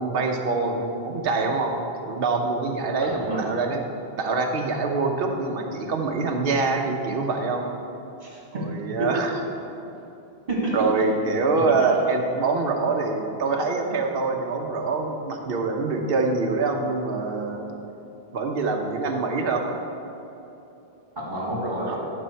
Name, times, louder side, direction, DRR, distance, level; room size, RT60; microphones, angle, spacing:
voice 1, 0.0-1.7 2.0-3.8 4.2-7.7 8.5-9.3 10.7-17.7 18.3-19.6 21.8-22.0, right 3 dB, 65° right, 2 dB, 1.0 m, -25 dB
voice 2, 3.0-3.4 8.2-8.6 9.0-9.1 10.5-10.7 11.5-11.6 21.2-22.1, right 1 dB, 45° right, -5 dB, 2.2 m, -29 dB
11.5 x 5.5 x 4.5 m, 2.9 s
omnidirectional pair, 1.1 m